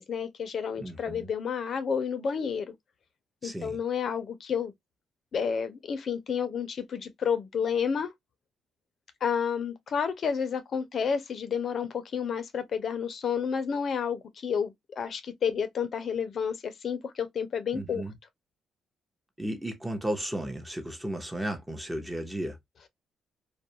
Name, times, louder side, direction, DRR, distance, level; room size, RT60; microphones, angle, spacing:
voice 1, 0.0-2.7 3.4-4.7 5.3-8.1 9.2-18.0, left 7 dB, 55° left, 0.4 m, -30 dB
voice 2, 0.8-1.3 3.4-3.8 17.7-18.1 19.4-22.6, right 1 dB, 10° right, 0.7 m, -34 dB
2.3 x 2.1 x 2.7 m
cardioid pair, 90°, 0 cm